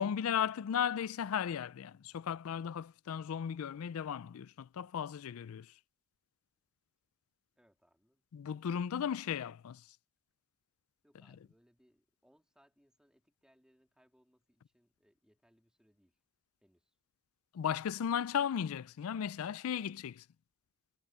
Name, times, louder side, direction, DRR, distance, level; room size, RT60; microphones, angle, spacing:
voice 1, 0.0-5.7 8.3-9.8 17.5-20.2, left 8 dB, 70° left, 0.4 m, -35 dB
voice 2, 7.6-8.2 11.0-16.2 16.6-16.9, equal, 5° right, 2.3 m, -71 dB
head